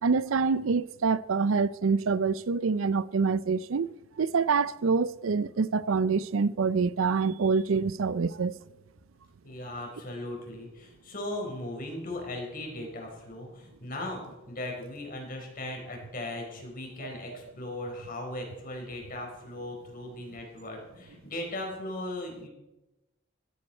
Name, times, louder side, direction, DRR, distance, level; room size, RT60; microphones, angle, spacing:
voice 1, 0.0-3.9 4.2-8.5 17.3-17.4, right 5 dB, 80° right, 0.5 m, -26 dB
voice 2, 9.4-22.5, left 1 dB, 45° left, 4.5 m, -38 dB
16.5 x 15.0 x 4.4 m
head